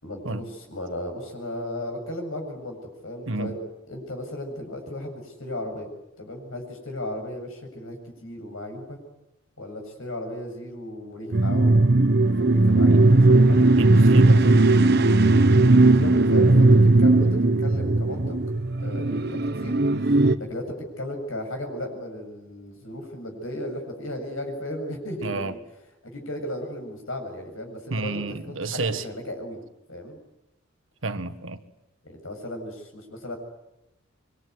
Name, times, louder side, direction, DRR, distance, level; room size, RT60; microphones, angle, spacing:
voice 1, 0.0-2.8 3.0-3.6 3.9-5.9 6.2-9.0 9.6-13.6 15.7-16.7 17.0-18.4 18.8-25.6 26.0-29.6 29.9-30.2 32.0-33.4, left 1 dB, 90° left, 7.5 m, -35 dB
voice 2, 3.3-3.6 12.8-13.1 13.8-14.7 25.2-25.5 27.9-29.0 31.0-31.6, right 3 dB, 80° right, 1.6 m, -29 dB
sound 1, 11.3-20.3, right 2 dB, 50° right, 1.1 m, -17 dB
26.0 x 23.5 x 9.7 m
head